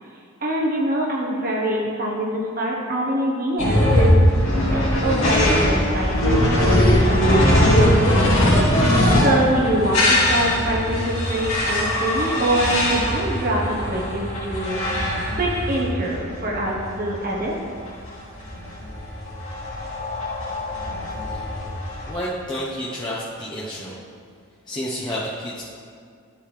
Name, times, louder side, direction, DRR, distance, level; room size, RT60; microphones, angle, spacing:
voice 1, 0.4-4.2 4.7-8.9 9.2-14.8 15.3-17.6, right 1 dB, 40° right, -3 dB, 1.1 m, -24 dB
sound 1, 3.6-22.1, left 1 dB, 70° left, 2.5 m, -20 dB
voice 2, 22.1-24.0 24.7-25.6, equal, 20° left, -7 dB, 0.9 m, -30 dB
12.5 x 6.9 x 3.2 m, 2.3 s
head